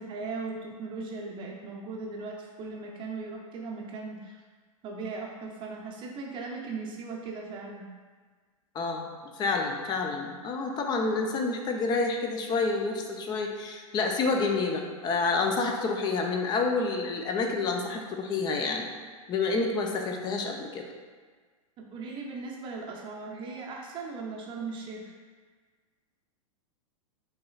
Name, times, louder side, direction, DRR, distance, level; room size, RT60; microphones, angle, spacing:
voice 1, 0.0-4.4 4.8-7.9 21.8-25.1, right 4 dB, 25° right, -1 dB, 0.7 m, -38 dB
voice 2, 8.7-9.1 9.3-18.9 19.3-20.8, left 3 dB, 25° left, 2 dB, 0.5 m, -28 dB
5.9 x 3.0 x 2.4 m, 1.5 s
figure-of-eight pair, 100°, 18 cm